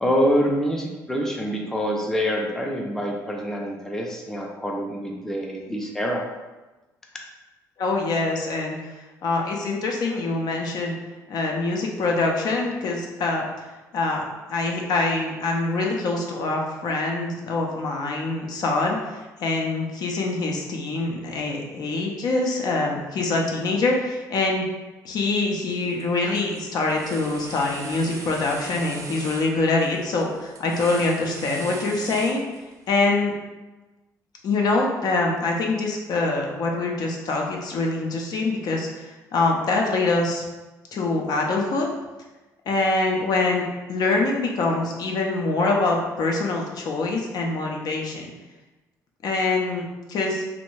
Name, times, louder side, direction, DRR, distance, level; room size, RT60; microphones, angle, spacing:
voice 1, 0.0-6.3, equal, 5° left, -1 dB, 0.5 m, -25 dB
voice 2, 7.8-8.8 9.2-11.0 11.3-13.4 13.9-24.7 25.0-32.4 32.9-33.3 34.4-40.4 40.9-41.9 42.7-48.3 49.2-50.4, left 3 dB, 60° left, 0 dB, 0.5 m, -24 dB
sound 1, 25.7-26.0 26.3-32.9, right 3 dB, 50° right, 0.5 m, -39 dB
2.5 x 2.1 x 3.1 m, 1.1 s
cardioid pair, 85°, 7 cm